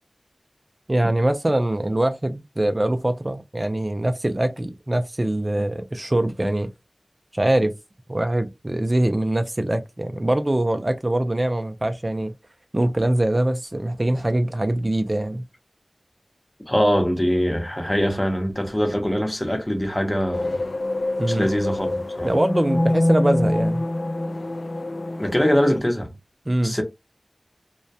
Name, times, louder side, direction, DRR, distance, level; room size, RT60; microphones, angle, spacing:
voice 1, 0.9-6.7 7.3-7.7 8.1-12.3 12.7-15.5 21.2-21.5 22.2-23.9 26.5-26.8, right 1 dB, 35° right, 0.3 m, -23 dB
voice 2, 16.7-20.6 21.3-22.3 25.2-26.1 26.6-26.8, equal, 25° left, 0.7 m, -22 dB
sound 1, 20.3-25.8, left 1 dB, 80° left, 0.3 m, -25 dB
2.2 x 2.1 x 2.6 m
wide cardioid pair, 45°, 0 cm